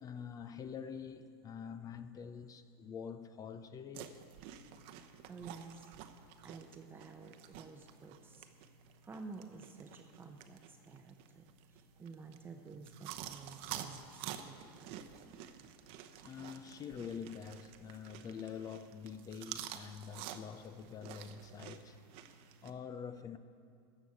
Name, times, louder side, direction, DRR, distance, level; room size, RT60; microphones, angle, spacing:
voice 1, 0.0-4.2 16.2-22.0 22.6-23.4, left 7 dB, 30° left, 0.5 m, -46 dB
sound 1, 3.9-22.7, right 10 dB, 55° right, 0.8 m, -50 dB
voice 2, 5.2-8.5 9.0-14.9, right 4 dB, 15° right, 0.7 m, -52 dB
14.5 x 6.2 x 8.3 m
hypercardioid pair, 115°, 13 cm